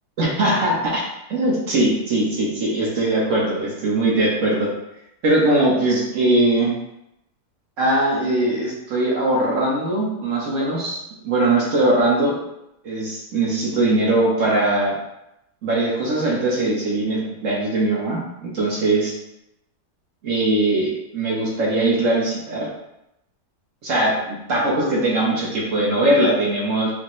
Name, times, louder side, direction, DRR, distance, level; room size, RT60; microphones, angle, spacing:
voice 1, 0.2-4.7 5.2-6.7 7.8-12.4 12.8-15.0 15.6-19.1 20.2-22.7 23.8-26.9, right 2 dB, 55° right, -4 dB, 1.3 m, -20 dB
4.3 x 2.8 x 3.1 m, 0.85 s
omnidirectional pair, 1.8 m